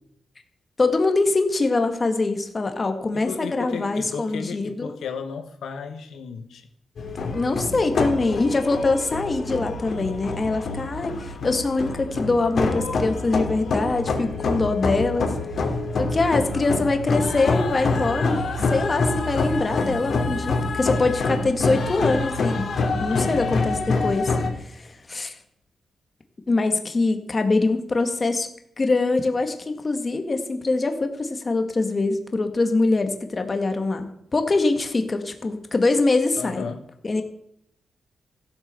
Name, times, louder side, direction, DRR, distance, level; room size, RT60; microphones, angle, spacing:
voice 1, 0.8-4.9 7.3-15.3 16.0-22.7 23.0-23.8 24.0-24.4 24.6-25.3 26.5-28.5 28.8-36.7 37.0-37.2, left 3 dB, 30° left, 6 dB, 1.8 m, -23 dB
voice 2, 3.1-6.7 23.1-23.7 36.4-36.9, left 5 dB, 85° left, 5 dB, 1.6 m, -34 dB
sound 1, 7.0-24.5, left 3 dB, 60° left, 3.1 m, -26 dB
15.5 x 8.8 x 6.9 m, 0.73 s
wide cardioid pair, 120°, 0 cm